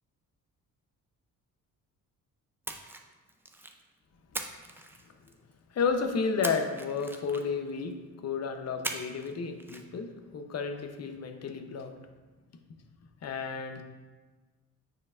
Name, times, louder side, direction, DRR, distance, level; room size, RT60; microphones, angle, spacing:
Splash splatter, 2.6-3.8 4.3-5.5 6.4-7.7 8.8-9.3 9.6-9.8, right 1 dB, 5° right, 0.4 m, -39 dB
voice 1, 5.7-11.9 13.2-13.8, left 5 dB, 45° left, 6 dB, 0.7 m, -32 dB
8.6 x 4.6 x 2.4 m, 1.3 s
cardioid pair, 110°, 35 cm